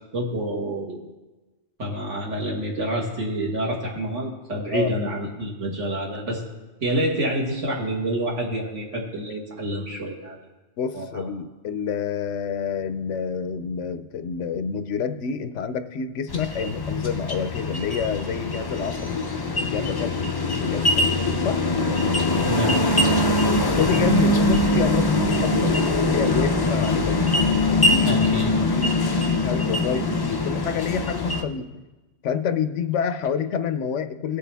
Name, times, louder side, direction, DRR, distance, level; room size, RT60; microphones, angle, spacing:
voice 1, 0.1-1.0 1.8-6.4 6.8-10.4 10.9-11.2 22.4-22.8 28.0-28.6, right 1 dB, 85° right, -1 dB, 2.2 m, -27 dB
voice 2, 10.8-19.2 19.6-20.3 20.6-21.6 23.8-27.2 27.7-31.8 32.2-34.4, left 6 dB, 80° left, 10 dB, 1.0 m, -28 dB
sound 1, 16.3-31.4, left 2 dB, 30° left, 0.5 m, -22 dB
18.0 x 6.7 x 3.4 m, 1.2 s
omnidirectional pair, 1.2 m